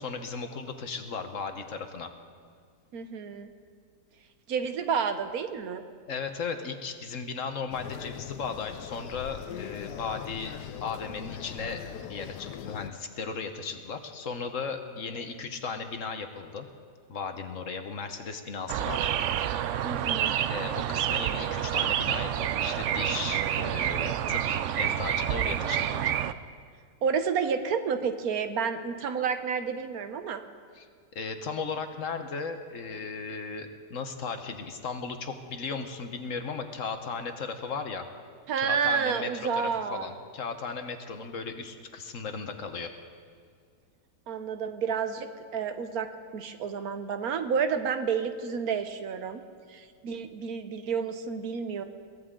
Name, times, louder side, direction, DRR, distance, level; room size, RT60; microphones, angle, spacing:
voice 1, 0.0-2.1 6.1-11.8 12.1-16.7 17.1-19.1 20.5-26.1 30.8-30.9 31.1-38.1 38.6-42.9, left 5 dB, 55° left, 6 dB, 1.3 m, -36 dB
voice 2, 2.9-3.5 4.5-5.8 15.4-15.5 19.8-20.3 27.0-30.4 38.5-40.1 44.3-46.1 46.3-49.4 49.7-51.8, right 6 dB, 60° right, 9 dB, 1.3 m, -30 dB
sound 1, 7.7-12.9, left 11 dB, 80° left, 1.1 m, -41 dB
sound 2, 18.7-26.3, right 10 dB, 80° right, 0.6 m, -28 dB
22.5 x 17.0 x 3.8 m, 2.1 s
omnidirectional pair, 1.8 m